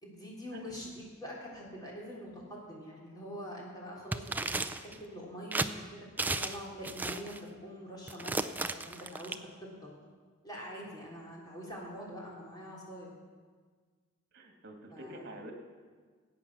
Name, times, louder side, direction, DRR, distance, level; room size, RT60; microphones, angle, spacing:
voice 1, 0.0-5.8 6.2-9.4 9.8-9.9 10.4-13.1 14.9-15.3, equal, 20° left, -4 dB, 3.4 m, -45 dB
sound 1, 4.1-5.0 5.5-5.7 6.2-6.6 6.8-7.4 8.1-9.3, right 2 dB, 10° right, 0.4 m, -34 dB
voice 2, 14.3-15.5, right 1 dB, 55° right, 3 dB, 2.1 m, -46 dB
17.0 x 8.8 x 6.1 m, 1.6 s
head